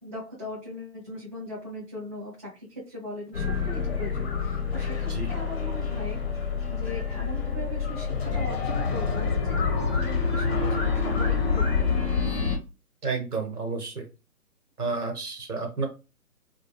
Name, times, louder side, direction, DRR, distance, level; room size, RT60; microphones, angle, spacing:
voice 1, 0.0-6.2 6.7-11.9, left 1 dB, 10° right, -8 dB, 0.6 m, -39 dB
sound 1, 3.3-12.6, left 5 dB, 40° left, 0.7 m, -27 dB
voice 2, 13.0-14.1 14.8-15.9, right 4 dB, 75° right, 3 dB, 1.1 m, -30 dB
2.2 x 2.2 x 3.1 m, 0.30 s
figure-of-eight pair, 145°, 46 cm